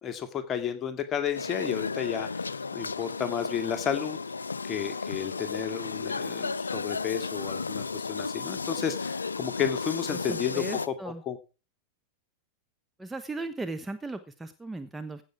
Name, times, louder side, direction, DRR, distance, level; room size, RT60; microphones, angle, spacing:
voice 1, 0.0-2.3 2.7-4.2 4.7-11.4, left 9 dB, 25° left, 8 dB, 2.3 m, -32 dB
sound 1, 1.3-10.9, left 4 dB, 75° left, 0.5 m, -34 dB
voice 2, 10.1-11.2 13.0-15.2, right 2 dB, 10° right, 9 dB, 1.0 m, -37 dB
16.0 x 7.4 x 4.8 m, 0.33 s
figure-of-eight pair, 90°, 0 cm